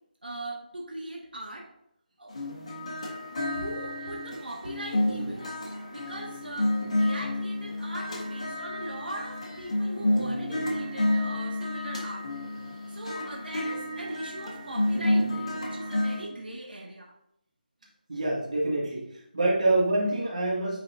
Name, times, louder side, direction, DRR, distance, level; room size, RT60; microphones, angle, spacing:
voice 1, 0.2-1.7 2.2-2.4 2.7-3.0 3.5-5.5 5.9-6.7 7.0-12.3 12.9-17.1, right 1 dB, 85° right, -2 dB, 1.7 m, -40 dB
sound 1, 2.3-16.2, left 1 dB, 45° left, 1.5 m, -30 dB
voice 2, 18.1-20.8, right 2 dB, 50° right, -4 dB, 2.1 m, -26 dB
9.2 x 4.2 x 2.7 m, 0.76 s
figure-of-eight pair, 175°, 5 cm